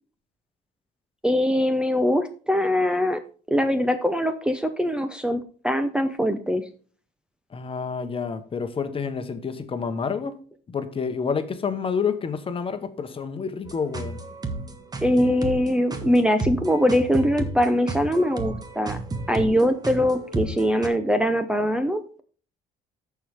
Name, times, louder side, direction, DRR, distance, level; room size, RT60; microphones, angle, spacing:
voice 1, 1.2-3.2 3.5-6.6 15.0-19.0 19.3-22.2, equal, 5° right, 0.7 m, -22 dB
voice 2, 7.5-10.4 10.7-14.2, left 6 dB, 30° left, 1.1 m, -29 dB
sound 1, 13.6-20.9, right 2 dB, 25° right, 1.4 m, -33 dB
14.0 x 4.7 x 3.5 m
cardioid pair, 110°, 17 cm